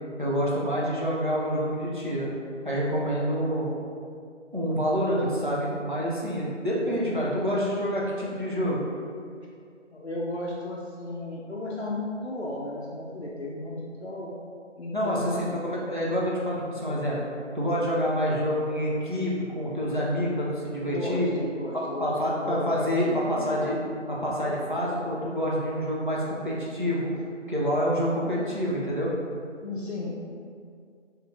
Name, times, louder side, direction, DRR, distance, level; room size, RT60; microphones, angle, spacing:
voice 1, 0.2-2.3 2.6-3.7 4.5-8.8 14.9-17.2 17.5-21.3 21.7-23.8 24.1-27.1 27.5-29.1, equal, 40° right, -6 dB, 0.6 m, -27 dB
voice 2, 9.9-14.3 14.8-15.7 20.9-23.5 29.6-30.2, left 2 dB, 60° left, -5 dB, 0.5 m, -34 dB
2.9 x 2.4 x 3.3 m, 2.3 s
figure-of-eight pair, 175°, 37 cm